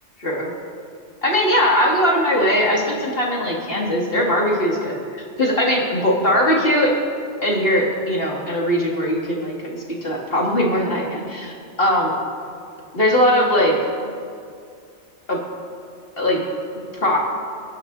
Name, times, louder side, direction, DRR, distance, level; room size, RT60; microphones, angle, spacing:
voice 1, 0.2-0.5 1.2-5.0 5.4-6.9 7.4-12.1 12.9-13.7 15.3-15.4 16.2-16.4 16.9-17.2, equal, 50° left, -2 dB, 3.0 m, -20 dB
29.0 x 10.5 x 4.2 m, 2.3 s
omnidirectional pair, 1.2 m